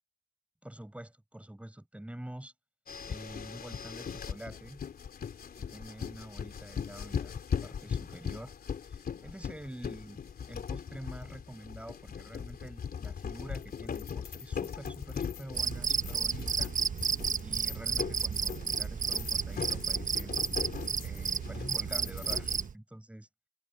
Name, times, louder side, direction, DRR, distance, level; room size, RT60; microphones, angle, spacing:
voice 1, 0.6-2.5 3.0-4.8 5.6-8.5 8.9-10.2 10.5-16.7 17.4-20.3 21.0-23.3, right 1 dB, 5° right, 6.2 m, -47 dB
sound 1, 2.9-22.7, left 7 dB, 50° left, 3.7 m, -39 dB
Cricket, 15.5-22.7, right 6 dB, 40° right, 1.2 m, -32 dB
cardioid pair, 90°, 20 cm